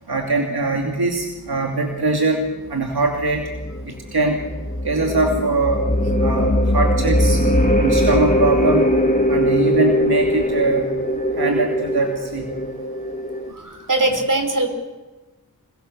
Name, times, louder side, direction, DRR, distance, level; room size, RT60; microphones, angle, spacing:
voice 1, 0.1-2.4 2.7-3.4 4.1-4.4 4.8-5.8 6.2-7.4 7.8-8.9 9.3-10.9 11.4-12.5, right 3 dB, 85° right, 1 dB, 2.9 m, -21 dB
sound 1, 3.2-13.5, equal, 20° left, 2.8 m, -20 dB
voice 2, 13.5-14.7, right 2 dB, 55° right, 5 dB, 4.8 m, -21 dB
28.5 x 21.5 x 6.9 m, 1.2 s
wide cardioid pair, 70°, 37 cm